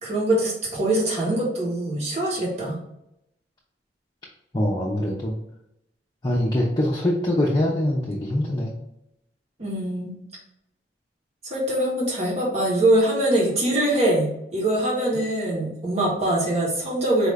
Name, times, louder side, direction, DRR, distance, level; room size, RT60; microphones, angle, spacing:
voice 1, 0.0-2.8 9.6-10.2 11.5-17.3, right 1 dB, 40° right, -4 dB, 1.3 m, -23 dB
voice 2, 4.5-5.4 6.2-8.7, left 1 dB, 25° left, -4 dB, 0.6 m, -23 dB
4.7 x 2.6 x 3.3 m, 0.82 s
head